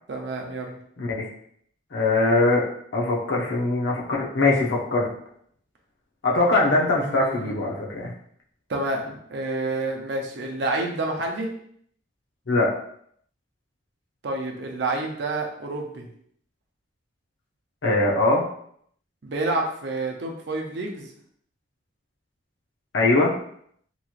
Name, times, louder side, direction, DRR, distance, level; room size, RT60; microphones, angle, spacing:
voice 1, 0.1-0.8 7.0-7.6 8.7-11.5 14.2-16.1 19.2-21.1, right 2 dB, 55° right, 1 dB, 0.5 m, -29 dB
voice 2, 1.0-1.3 1.9-2.7 2.9-5.1 6.2-8.1 12.5-12.8 17.8-18.4 22.9-23.3, left 2 dB, 65° left, -3 dB, 0.7 m, -21 dB
2.9 x 2.9 x 2.4 m, 0.66 s
head